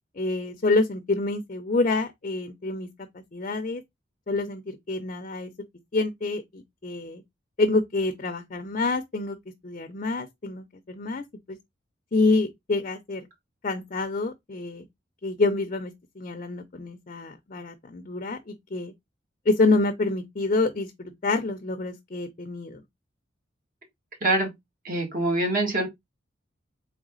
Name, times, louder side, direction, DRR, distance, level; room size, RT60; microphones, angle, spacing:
voice 1, 0.2-2.9 3.3-3.8 4.3-5.5 5.9-7.2 7.6-9.4 9.6-11.6 12.1-13.3 13.6-14.9 15.2-18.9 19.5-22.8, left 3 dB, 40° left, 0.5 m, -27 dB
voice 2, 24.2-24.5 24.8-25.9, right 2 dB, 45° right, 1.9 m, -24 dB
4.0 x 3.4 x 3.7 m
head